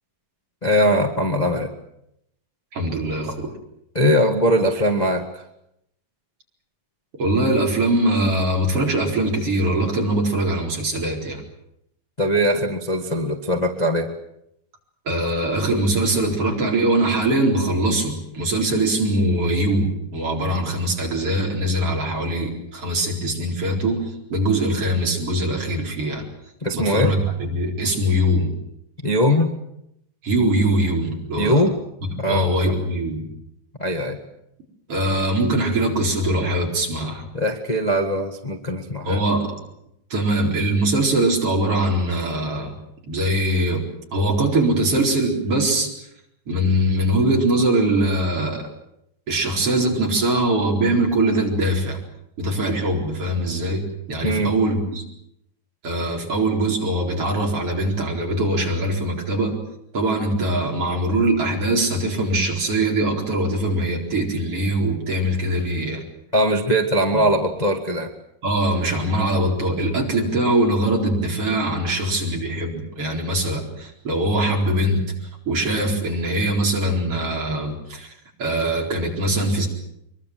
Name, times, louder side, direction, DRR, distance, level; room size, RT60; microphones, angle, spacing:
voice 1, 0.6-1.7 3.9-5.4 12.2-14.1 26.6-27.1 29.0-29.5 31.4-31.7 32.2-32.5 33.8-34.2 37.3-39.2 54.2-54.5 66.3-68.1, equal, 25° left, 1 dB, 0.8 m, -20 dB
voice 2, 2.7-3.5 7.2-11.4 15.1-26.2 26.7-28.5 30.2-31.6 32.3-33.3 34.9-37.2 39.0-39.5 40.1-42.8 43.1-43.9 44.1-45.9 46.5-48.7 49.3-52.0 52.4-55.0 55.8-59.6 59.9-66.0 67.1-67.2 68.4-75.1 75.5-78.1 78.4-79.7, right 1 dB, 40° right, 0 dB, 5.1 m, -22 dB
24.0 x 23.0 x 7.7 m, 0.79 s
omnidirectional pair, 3.9 m